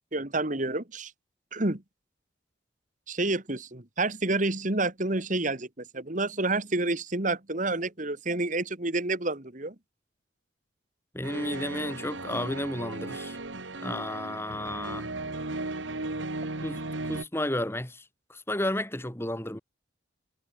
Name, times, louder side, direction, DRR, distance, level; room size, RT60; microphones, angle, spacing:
voice 1, 0.1-1.1 1.5-1.8 3.1-9.8, right 2 dB, 40° right, 2.0 m, -29 dB
voice 2, 11.1-13.4 13.8-15.1 16.6-18.0 18.3-19.6, left 1 dB, 15° left, 2.4 m, -32 dB
sound 1, 11.2-17.2, right 2 dB, 75° right, 2.0 m, -36 dB
head